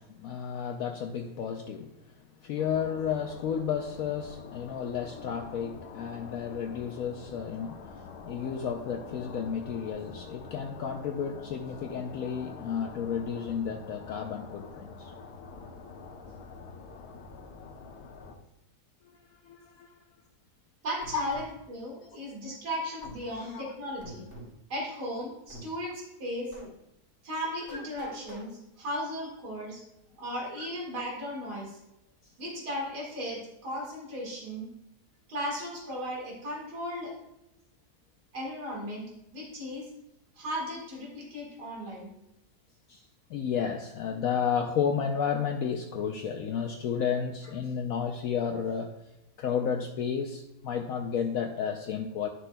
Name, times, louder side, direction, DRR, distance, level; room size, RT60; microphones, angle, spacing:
voice 1, 0.0-15.1 19.3-19.9 21.1-21.2 22.0-22.2 22.4-22.6 23.4-23.7 30.6-30.7 42.9-48.9 49.4-52.3, left 7 dB, 70° left, 3 dB, 1.0 m, -32 dB
sound 1, 2.6-18.4, left 5 dB, 85° left, 1.4 m, -46 dB
voice 2, 20.8-24.3 24.7-26.6 27.2-29.8 30.2-31.8 32.4-34.7 35.3-37.1 38.3-39.9 40.4-42.1, equal, 85° right, -2 dB, 2.5 m, -36 dB
sound 2, 21.0-21.5 23.0-23.2 24.0-24.5 25.5-25.7 26.5-26.7 27.7-28.5, equal, 15° right, 2.5 m, -45 dB
11.0 x 6.2 x 2.2 m, 0.89 s
omnidirectional pair, 1.7 m